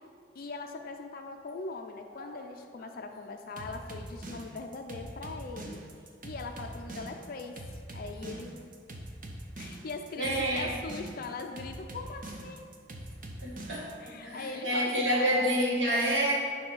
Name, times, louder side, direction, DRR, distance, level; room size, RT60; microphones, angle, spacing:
voice 1, 0.3-5.8 6.2-8.7 9.6-12.6 14.0-15.6, left 3 dB, 55° left, 5 dB, 0.5 m, -41 dB
sound 1, 3.6-14.1, right 1 dB, 50° right, 0.8 m, -43 dB
voice 2, 10.2-10.7 13.4-16.4, equal, 80° right, -4 dB, 2.0 m, -28 dB
9.4 x 3.3 x 5.5 m, 2.1 s
head